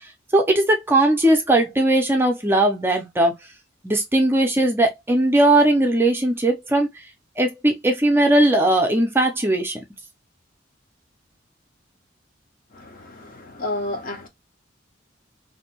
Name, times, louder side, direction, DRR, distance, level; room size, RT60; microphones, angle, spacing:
voice 1, 0.3-3.3 3.8-6.9 7.4-9.8, right 1 dB, 15° right, 0.4 m, -18 dB
voice 2, 12.7-14.3, left 2 dB, 50° left, 0.7 m, -31 dB
2.6 x 2.1 x 2.8 m
head